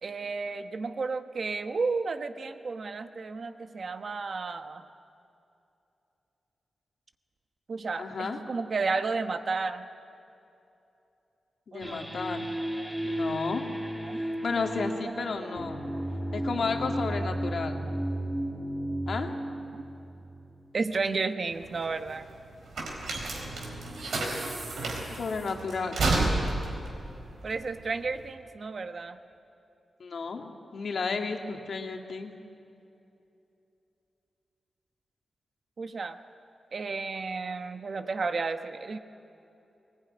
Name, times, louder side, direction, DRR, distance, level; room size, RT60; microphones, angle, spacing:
voice 1, 0.0-4.8 7.7-9.8 11.7-12.1 14.0-14.2 14.5-14.6 15.0-15.5 15.8-16.0 17.2-17.3 19.7-19.8 20.7-22.2 27.4-29.2 35.8-36.2 36.7-39.0, right 4 dB, 50° right, 8 dB, 1.0 m, -32 dB
voice 2, 8.0-8.4 11.7-12.5 13.0-13.7 14.1-15.8 16.3-17.8 19.1-19.3 25.0-26.0 30.0-30.5 30.7-32.3, left 4 dB, 65° left, 3 dB, 2.0 m, -32 dB
sound 1, 11.8-21.2, right 1 dB, ahead, 2.9 m, -34 dB
sound 2, 21.5-28.3, right 2 dB, 85° right, 4.3 m, -31 dB
20.5 x 20.0 x 9.7 m, 2.8 s
wide cardioid pair, 115°, 0 cm